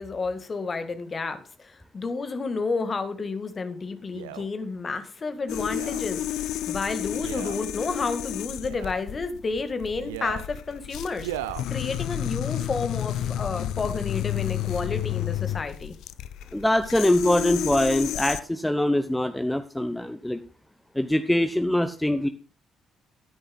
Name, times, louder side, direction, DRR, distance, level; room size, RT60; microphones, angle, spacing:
voice 1, 0.0-11.3 11.7-15.9, left 4 dB, 35° left, 9 dB, 1.8 m, -31 dB
Male speech man speaking, 4.1-4.5 5.6-6.0 7.1-7.7 8.6-9.0 10.0-10.5 11.2-11.7 12.4-12.5, right 13 dB, 75° right, 0.6 m, -37 dB
sound 1, 5.5-18.4, left 12 dB, 60° left, 0.4 m, -31 dB
voice 2, 16.5-20.4 20.9-22.3, left 1 dB, 5° left, 10 dB, 0.9 m, -23 dB
16.0 x 10.0 x 2.3 m, 0.36 s
figure-of-eight pair, 45°, 0 cm